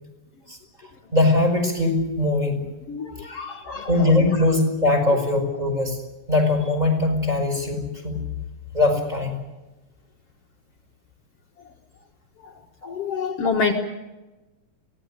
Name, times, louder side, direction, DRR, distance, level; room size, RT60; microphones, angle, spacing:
voice 1, 0.5-2.6 3.7-6.0 6.3-8.2 8.7-9.4 12.8-12.9, left 2 dB, 10° right, 5 dB, 5.2 m, -21 dB
voice 2, 2.9-3.9 12.4-12.5 12.9-13.7, left 5 dB, 55° left, 2 dB, 2.2 m, -27 dB
23.5 x 17.5 x 8.8 m, 1.1 s
omnidirectional pair, 3.6 m